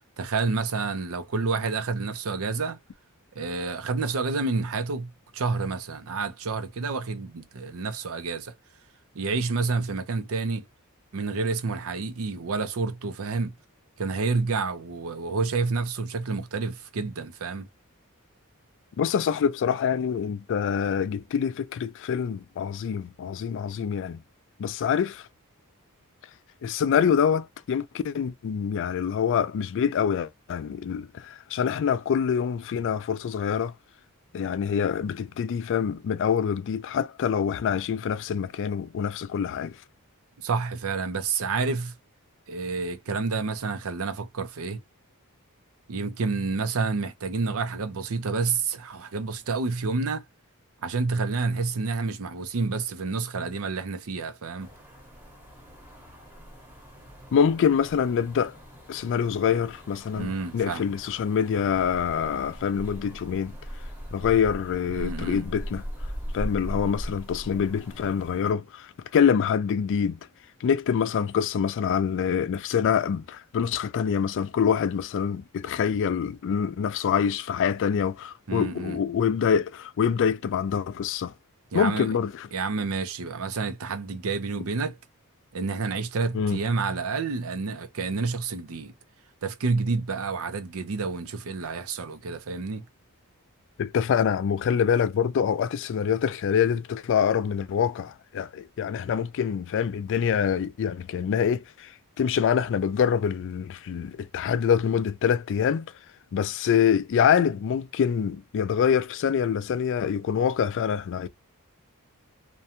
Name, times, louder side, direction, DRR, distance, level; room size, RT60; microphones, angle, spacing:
voice 1, 0.2-2.8 3.4-8.5 9.1-10.6 11.1-13.5 14.0-17.7 40.4-41.9 42.5-44.8 45.9-50.2 50.8-54.7 60.1-60.8 64.9-65.4 78.5-79.0 81.7-82.1 82.5-85.0 85.5-88.9 89.4-92.8, right 4 dB, 65° right, 0.5 m, -29 dB
voice 2, 19.0-24.2 24.6-25.3 26.6-33.7 34.3-39.8 57.3-58.6 58.9-63.5 64.1-65.8 66.3-70.2 70.6-81.3 81.7-82.5 86.3-86.6 93.8-105.9 106.3-111.3, left 7 dB, 60° left, 0.3 m, -25 dB
sound 1, 54.6-68.5, equal, 10° right, 0.9 m, -40 dB
2.5 x 2.2 x 2.7 m
head